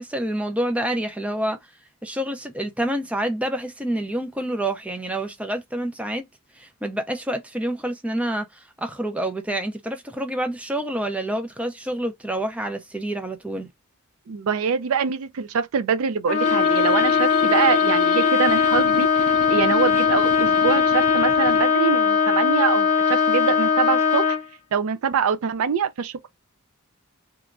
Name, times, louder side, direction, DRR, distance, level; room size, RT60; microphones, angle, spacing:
voice 1, 0.0-1.6 2.0-6.3 6.6-13.7, right 1 dB, 5° right, 0.4 m, -28 dB
voice 2, 14.3-24.4 24.7-26.3, right 6 dB, 75° right, 0.4 m, -24 dB
Trumpet, 16.3-24.4, left 6 dB, 30° left, 0.6 m, -20 dB
sound 1, 16.4-21.7, left 6 dB, 85° left, 0.4 m, -31 dB
3.0 x 2.2 x 2.4 m
head